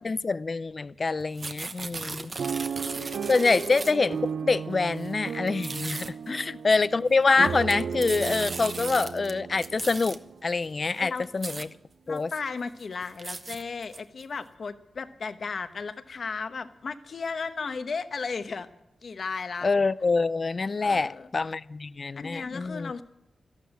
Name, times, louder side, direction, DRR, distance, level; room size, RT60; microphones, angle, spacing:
voice 1, 0.0-2.3 3.0-10.2 10.4-11.7 12.1-12.3 19.6-23.0, left 4 dB, 45° left, 0.5 m, -26 dB
sound 1, 1.2-4.1 4.9-5.1 5.5-6.1 7.3-9.3 9.6-10.2 10.9-11.0 11.2-11.7 12.2-12.3 12.6-14.2, right 3 dB, 45° right, 1.0 m, -37 dB
voice 2, 2.4-3.1 6.3-6.4 11.0-11.3 12.1-18.7 19.0-19.7 20.8-21.3 22.2-23.0, left 5 dB, 60° left, 1.0 m, -35 dB
sound 2, 2.4-10.5 11.1-11.2 11.4-11.7, right 6 dB, 80° right, 0.4 m, -35 dB
13.5 x 12.0 x 7.6 m
wide cardioid pair, 90°, 0 cm